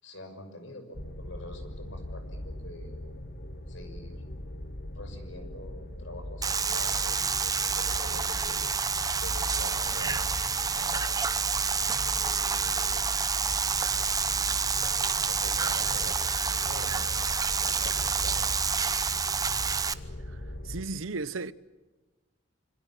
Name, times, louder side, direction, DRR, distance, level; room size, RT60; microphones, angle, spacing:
voice 1, 0.0-3.0 3.7-4.2 4.9-8.6 9.2-10.3 10.6-11.2 12.2-13.0 15.3-18.4, left 1 dB, 70° left, 6.3 m, -46 dB
sound 1, 0.9-20.8, left 1 dB, 50° left, 1.9 m, -40 dB
sound 2, 6.4-19.9, right 5 dB, 20° right, 0.8 m, -28 dB
sound 3, 8.0-18.5, right 1 dB, 10° left, 3.5 m, -52 dB
voice 2, 20.6-21.5, right 3 dB, 80° right, 0.9 m, -34 dB
27.0 x 26.0 x 7.5 m
head